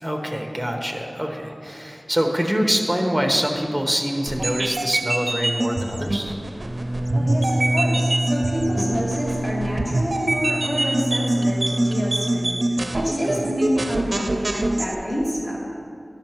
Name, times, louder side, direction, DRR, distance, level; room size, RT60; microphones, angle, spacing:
voice 1, 0.0-6.4 13.2-13.5, equal, 5° right, 2 dB, 1.0 m, -25 dB
sound 1, 4.3-14.9, right 2 dB, 55° right, 0.5 m, -25 dB
Bowed string instrument, 6.6-13.2, right 1 dB, 20° right, 0.7 m, -27 dB
voice 2, 7.1-12.5 12.9-15.7, equal, 35° left, -6 dB, 2.3 m, -27 dB
11.0 x 5.6 x 4.5 m, 2.4 s
wide cardioid pair, 75°, 0 cm